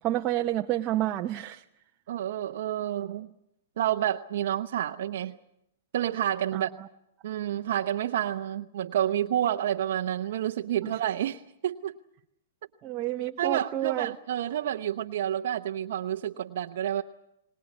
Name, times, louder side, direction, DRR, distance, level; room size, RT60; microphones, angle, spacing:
voice 1, 0.0-1.6 6.5-6.9 10.8-11.0 12.8-14.1, right 14 dB, 30° right, 4 dB, 0.8 m, -29 dB
voice 2, 2.1-3.3 3.8-5.4 5.9-6.7 7.2-11.9 13.4-17.0, right 11 dB, 65° right, 5 dB, 0.8 m, -29 dB
23.5 x 20.0 x 8.3 m, 0.83 s
hypercardioid pair, 130°, 0 cm